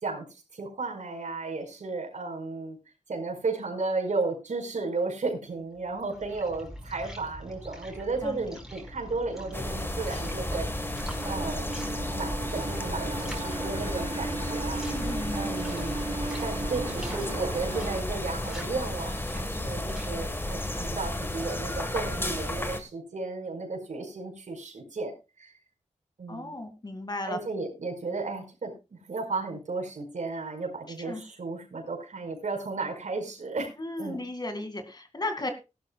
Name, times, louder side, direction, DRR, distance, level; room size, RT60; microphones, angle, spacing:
voice 1, 0.0-2.8 3.1-11.7 12.1-14.8 15.3-16.1 16.4-25.5 26.2-26.6 27.3-34.2, right 3 dB, 75° right, 2 dB, 5.0 m, -34 dB
sound 1, 5.7-21.7, right 1 dB, 5° right, 4.5 m, -44 dB
sound 2, 8.9-18.0, right 3 dB, 45° right, 0.9 m, -38 dB
sound 3, 9.5-22.8, left 1 dB, 15° left, 1.5 m, -33 dB
voice 2, 14.8-15.5 26.3-27.4 31.0-31.2 33.8-35.5, left 2 dB, 35° left, 7 dB, 2.2 m, -35 dB
18.5 x 11.5 x 2.3 m, 0.27 s
wide cardioid pair, 105°, 13 cm